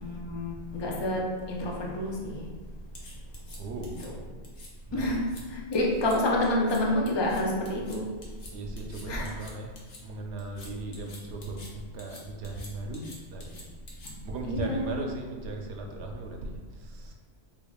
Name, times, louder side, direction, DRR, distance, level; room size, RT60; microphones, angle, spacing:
voice 1, 0.0-1.2 1.5-2.4 4.0-4.1 4.9-8.1 9.1-9.3 14.0-14.1 14.4-15.0, left 1 dB, 40° left, -2 dB, 0.4 m, -28 dB
sound 1, 3.0-4.1 4.4-4.7 5.0-5.4 5.7-6.2 6.4-6.8 7.1-10.0 10.4-11.7 12.0-14.4, left 2 dB, 65° left, 1.0 m, -49 dB
voice 2, 3.6-4.0 4.9-5.3 8.5-13.7 14.2-17.1, right 2 dB, 75° right, 2 dB, 0.8 m, -38 dB
3.6 x 3.4 x 2.3 m, 1.4 s
omnidirectional pair, 1.2 m